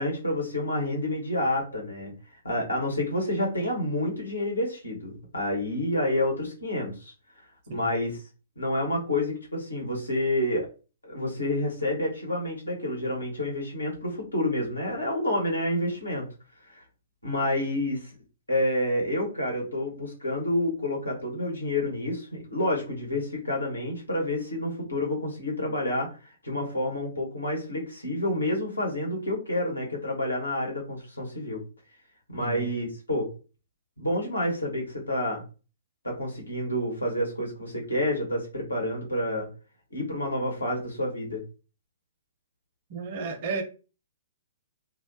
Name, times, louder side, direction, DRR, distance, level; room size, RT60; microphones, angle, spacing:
voice 1, 0.0-2.1 2.4-7.1 7.7-8.1 8.6-10.7 11.0-16.3 16.7-16.8 17.2-18.1 18.5-26.1 26.4-31.6 32.3-33.3 34.0-35.4 36.0-39.5 39.9-41.4, left 1 dB, 85° left, -1 dB, 1.0 m, -29 dB
voice 2, 32.4-32.7 42.9-43.6, right 3 dB, 45° right, 4 dB, 0.6 m, -33 dB
2.3 x 2.1 x 2.5 m, 0.34 s
figure-of-eight pair, 120°, 0 cm